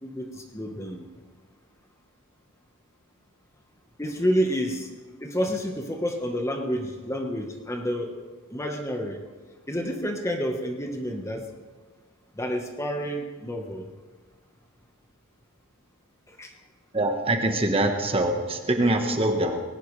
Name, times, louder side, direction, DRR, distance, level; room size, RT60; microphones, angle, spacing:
voice 1, 0.0-1.1 4.0-4.9 5.2-8.2 8.5-9.2 9.7-11.5 12.3-13.9 16.4-16.5, equal, 15° left, 3 dB, 1.3 m, -29 dB
voice 2, 16.9-19.6, right 1 dB, 25° right, 4 dB, 1.4 m, -24 dB
20.5 x 18.5 x 3.3 m, 1.4 s
head